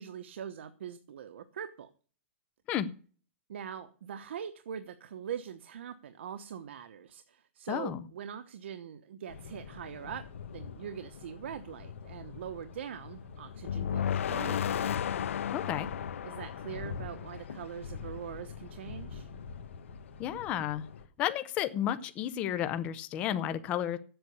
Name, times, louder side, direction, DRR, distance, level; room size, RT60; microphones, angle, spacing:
voice 1, 0.0-1.9 3.5-10.2 10.5-14.7 16.2-19.3, right 8 dB, 65° right, 9 dB, 1.0 m, -42 dB
voice 2, 7.7-8.0 15.5-15.9 20.2-20.8 21.2-24.0, left 11 dB, 15° left, 11 dB, 0.6 m, -32 dB
sound 1, 9.3-21.1, left 5 dB, 70° left, 1.5 m, -45 dB
sound 2, 13.6-17.7, left 9 dB, 90° left, 0.4 m, -33 dB
8.1 x 8.0 x 8.1 m, 0.39 s
hypercardioid pair, 175°, 7 cm